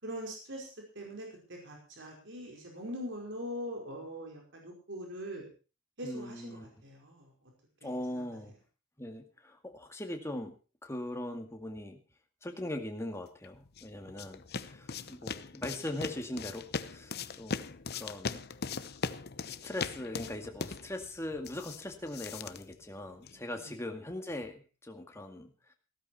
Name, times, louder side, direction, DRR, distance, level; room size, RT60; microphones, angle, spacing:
voice 1, 0.0-5.5 6.0-7.3 7.8-8.2 23.6-23.8, equal, 60° right, 1 dB, 5.0 m, -42 dB
voice 2, 6.0-6.7 7.8-8.5 9.0-10.5 10.8-12.0 12.4-18.4 19.6-25.7, left 1 dB, 15° left, 4 dB, 2.1 m, -40 dB
sound 1, 13.4-23.5, left 5 dB, 50° left, 0.8 m, -40 dB
15.5 x 13.5 x 4.4 m, 0.34 s
head